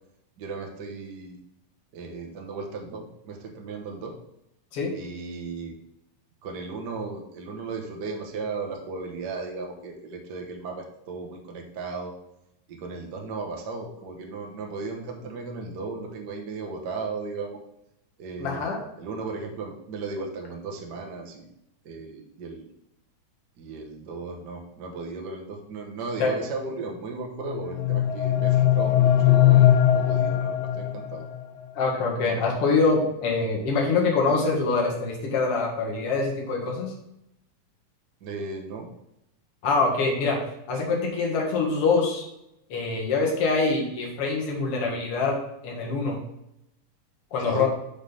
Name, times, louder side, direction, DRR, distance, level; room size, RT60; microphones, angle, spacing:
voice 1, 0.4-1.4 1.9-4.1 4.9-5.8 6.4-12.1 12.7-17.6 18.2-18.6 19.0-21.5 21.8-22.7 23.6-31.2 38.2-38.9 47.5-47.7, right 4 dB, 60° right, 1 dB, 1.0 m, -36 dB
voice 2, 18.4-18.8 26.2-26.3 31.7-36.9 39.6-40.4 40.7-42.2 42.7-45.4 45.6-46.2 47.3-47.7, left 4 dB, 50° left, -1 dB, 2.4 m, -24 dB
sound 1, 27.5-31.4, left 11 dB, 90° left, 1.4 m, -20 dB
6.2 x 5.2 x 5.5 m, 0.82 s
omnidirectional pair, 3.6 m